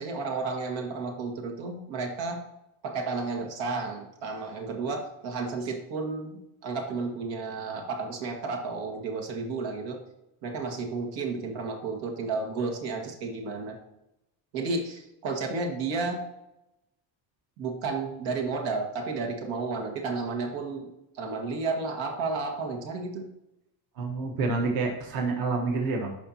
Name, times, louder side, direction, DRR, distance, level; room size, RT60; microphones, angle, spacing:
voice 1, 0.0-2.4 2.8-10.0 10.4-13.8 14.5-16.2 17.6-20.9 21.1-23.3, right 4 dB, 85° right, 2 dB, 1.8 m, -32 dB
voice 2, 24.0-26.1, right 3 dB, 50° right, 1 dB, 1.3 m, -28 dB
12.5 x 4.6 x 2.8 m, 0.88 s
cardioid pair, 155°, 44 cm